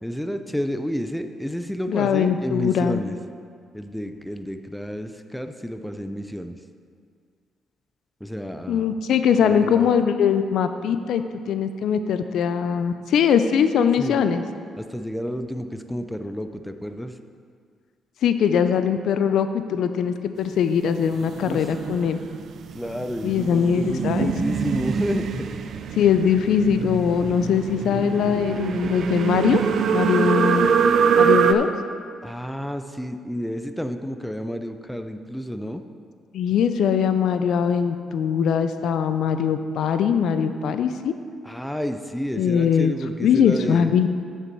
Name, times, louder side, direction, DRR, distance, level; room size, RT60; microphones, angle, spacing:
voice 1, 0.0-3.2 3.7-6.6 8.2-9.0 9.4-9.9 14.0-14.2 14.8-17.2 21.4-21.7 22.7-25.5 32.2-35.8 41.4-43.9, equal, 5° left, 8 dB, 0.5 m, -30 dB
voice 2, 1.9-3.0 8.7-11.2 11.5-14.4 18.2-22.2 23.2-24.3 26.0-29.6 29.9-30.7 31.2-31.7 36.3-41.1 42.4-42.9 43.2-44.1, left 7 dB, 75° left, 9 dB, 0.4 m, -21 dB
sound 1, 21.1-31.5, right 7 dB, 65° right, 0.4 m, -24 dB
8.8 x 6.7 x 4.6 m, 2.1 s
cardioid pair, 90°, 0 cm